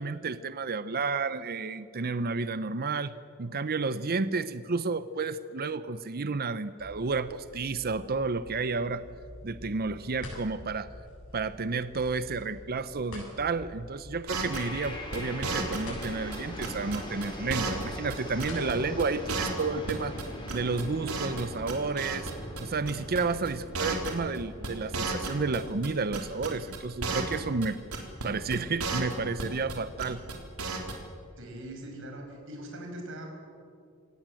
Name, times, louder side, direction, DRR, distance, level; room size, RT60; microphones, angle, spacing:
voice 1, 0.0-3.1 3.4-9.0 9.4-10.9 11.3-20.2 20.5-22.3 22.6-27.8 28.2-30.2, right 4 dB, 45° right, 13 dB, 0.7 m, -31 dB
sound 1, 6.8-19.1, left 1 dB, 70° left, 7.6 m, -47 dB
sound 2, 14.3-16.1 16.3-17.8 18.1-18.2 18.4-18.7 19.0-19.1 19.3-20.2 20.5-21.4 21.7-22.3 22.6-22.7 22.9-23.2 23.5-23.6 23.7-24.4 24.6-25.9 26.1-27.4 27.6-27.7 27.9-28.3 28.5-29.7 30.0-30.3 30.6-30.9, right 3 dB, 85° right, 3.8 m, -33 dB
sound 3, 14.5-25.7, left 1 dB, 25° left, 4.5 m, -42 dB
voice 2, 31.4-33.3, right 1 dB, 65° right, 3 dB, 5.6 m, -41 dB
27.0 x 18.0 x 7.7 m, 2.4 s
head